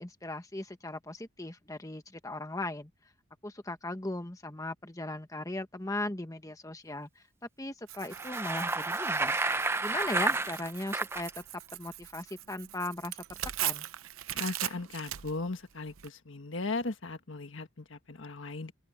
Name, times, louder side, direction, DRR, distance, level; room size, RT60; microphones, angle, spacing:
voice 1, 0.0-2.9 3.4-7.1 7.6-9.4 9.8-11.4 11.7-13.2 13.6-13.8, left 2 dB, 15° left, 1.3 m, -38 dB
Tearing, 7.9-16.1, right 13 dB, 80° right, 0.7 m, -40 dB
Bicycle, 8.0-11.3, right 2 dB, 10° right, 0.6 m, -31 dB
voice 2, 14.3-18.7, left 3 dB, 65° left, 1.5 m, -37 dB
open air
head